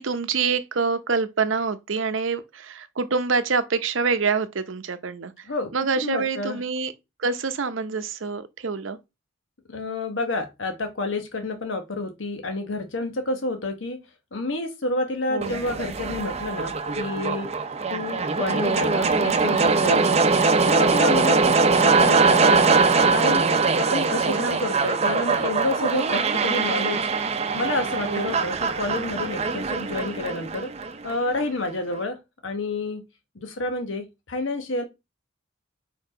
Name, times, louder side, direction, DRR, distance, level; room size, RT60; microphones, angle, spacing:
voice 1, 0.0-5.5 5.7-6.9 7.2-9.0 15.3-15.6 24.2-24.6 28.0-28.3, right 4 dB, 80° right, 0.7 m, -26 dB
voice 2, 5.5-6.6 9.7-14.0 14.3-17.5 17.9-20.3 20.6-23.4 23.8-27.1 27.5-30.7 31.0-32.2 32.4-33.0 33.3-34.8, left 2 dB, 75° left, 1.1 m, -29 dB
sound 1, 15.4-31.4, right 4 dB, 35° right, 0.6 m, -22 dB
4.6 x 4.5 x 5.0 m
head